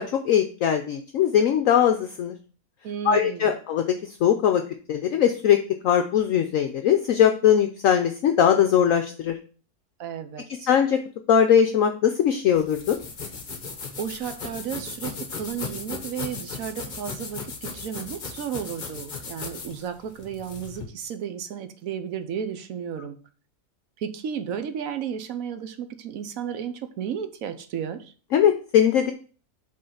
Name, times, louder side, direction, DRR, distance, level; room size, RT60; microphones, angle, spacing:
voice 1, 0.0-2.4 3.0-3.8 4.2-4.6 4.9-9.4 10.7-11.0 11.3-13.0 28.3-29.1, left 9 dB, 65° left, 6 dB, 0.9 m, -20 dB
voice 2, 2.8-3.5 10.0-10.7 14.0-23.2 24.0-28.1, right 8 dB, 65° right, 9 dB, 1.1 m, -33 dB
sound 1, 12.5-20.8, left 4 dB, 35° left, 1.0 m, -37 dB
5.4 x 3.9 x 5.7 m, 0.39 s
omnidirectional pair, 1.7 m